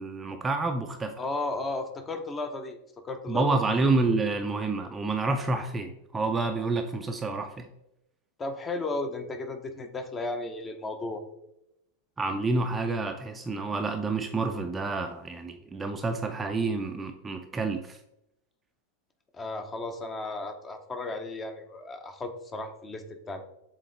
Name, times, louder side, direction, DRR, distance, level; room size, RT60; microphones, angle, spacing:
voice 1, 0.0-1.2 3.3-7.7 12.2-18.0, right 3 dB, 15° right, 5 dB, 0.4 m, -28 dB
voice 2, 1.2-2.8 3.0-3.6 8.4-11.2 19.3-23.4, left 2 dB, 20° left, 7 dB, 0.7 m, -34 dB
7.5 x 3.8 x 3.4 m, 0.83 s
figure-of-eight pair, 90°, 0 cm